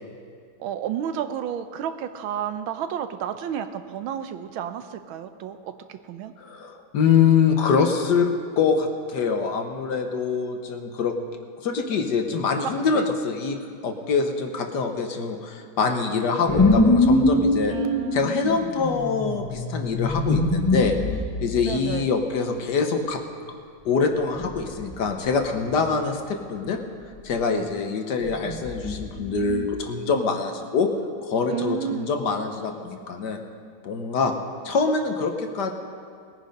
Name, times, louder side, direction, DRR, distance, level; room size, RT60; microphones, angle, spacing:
voice 1, 0.6-6.3 12.6-13.1 17.7-18.4 21.6-22.1 27.5-27.7 31.5-32.1, right 9 dB, 80° right, 9 dB, 1.5 m, -31 dB
voice 2, 6.4-8.3 8.6-11.1 11.6-13.6 13.8-17.7 18.1-21.0 21.4-23.2 23.8-26.8 27.2-30.9 31.2-33.4 33.8-34.3 34.6-35.7, left 5 dB, 60° left, 5 dB, 1.4 m, -24 dB
sound 1, 16.5-21.7 24.4-25.1 25.3-25.8 28.3-29.7, left 2 dB, 25° left, 0.4 m, -23 dB
20.0 x 9.3 x 5.2 m, 2.3 s
omnidirectional pair, 2.3 m